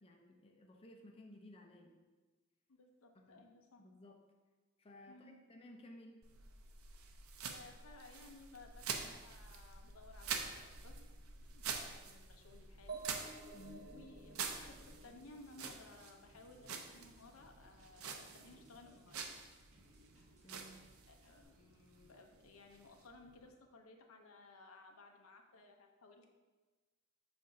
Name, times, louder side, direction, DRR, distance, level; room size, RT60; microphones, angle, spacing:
voice 1, 0.0-2.0 3.3-3.5 3.8-4.2 4.8-6.2 13.5-13.8 20.4-20.8, left 1 dB, 25° left, 1 dB, 0.6 m, -57 dB
voice 2, 2.7-3.8 5.1-5.5 7.4-11.1 11.5-13.0 13.8-19.3 21.1-26.3, left 3 dB, 70° left, 4 dB, 0.7 m, -59 dB
sound 1, 6.2-23.5, right 5 dB, 90° right, 0.6 m, -48 dB
sound 2, 12.9-16.6, right 4 dB, 50° right, 0.8 m, -52 dB
sound 3, 14.6-21.4, equal, 35° right, 1.3 m, -70 dB
7.8 x 2.6 x 5.2 m, 1.3 s
head